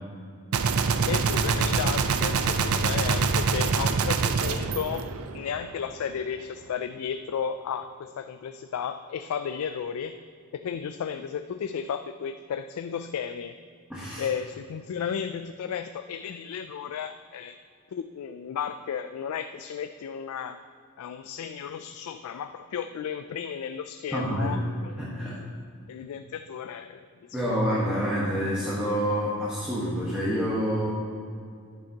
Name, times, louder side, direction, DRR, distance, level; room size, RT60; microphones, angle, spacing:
Gunshot gunfire, 0.5-5.7, right 5 dB, 80° right, 0.5 m, -25 dB
voice 1, 1.1-5.1 5.3-10.2 10.5-13.6 14.2-17.6 17.9-20.6 21.0-25.4 25.9-27.6, left 7 dB, 80° left, 9 dB, 0.3 m, -34 dB
voice 2, 13.9-14.3 24.1-24.6 25.0-25.3 27.3-30.9, equal, 5° right, -8 dB, 1.2 m, -27 dB
10.5 x 8.6 x 2.9 m, 2.2 s
head